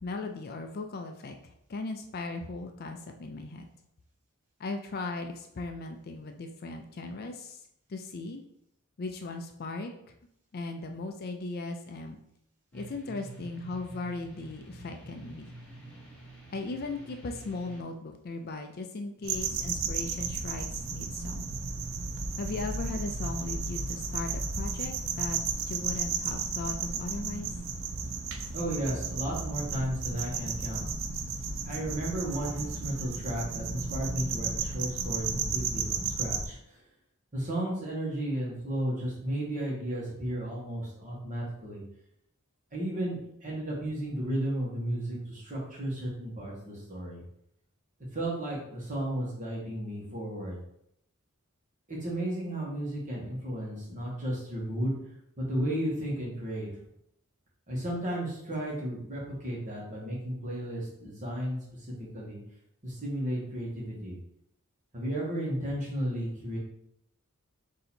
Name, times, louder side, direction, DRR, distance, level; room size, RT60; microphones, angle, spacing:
voice 1, 0.0-3.7 4.6-7.6 7.9-8.4 9.0-9.9 10.5-12.2 12.7-15.5 16.5-21.5 22.4-25.4 25.7-27.5, left 3 dB, 45° left, 5 dB, 0.4 m, -37 dB
sound 1, 12.7-17.8, right 2 dB, 5° left, 1.4 m, -48 dB
sound 2, 19.2-36.5, right 4 dB, 60° right, 0.5 m, -33 dB
voice 2, 28.5-30.8 31.6-36.6 37.3-41.8 42.7-47.2 48.1-50.6 51.9-55.0 55.4-56.7 57.7-61.6 62.0-62.4 62.8-64.1 64.9-66.6, right 1 dB, 35° right, -4 dB, 1.5 m, -33 dB
3.9 x 2.8 x 4.2 m, 0.74 s
head